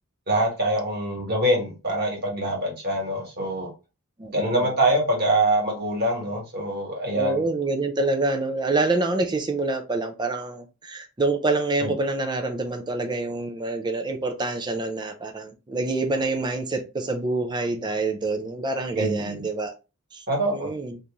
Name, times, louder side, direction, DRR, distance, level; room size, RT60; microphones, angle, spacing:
voice 1, 0.3-3.7 4.3-7.4 11.8-11.9 19.0-19.4 20.3-20.7, right 1 dB, 45° right, 1.4 m, -24 dB
voice 2, 4.2-4.7 7.1-19.7 20.1-21.0, right 2 dB, 20° right, 0.4 m, -26 dB
2.9 x 2.6 x 3.5 m
head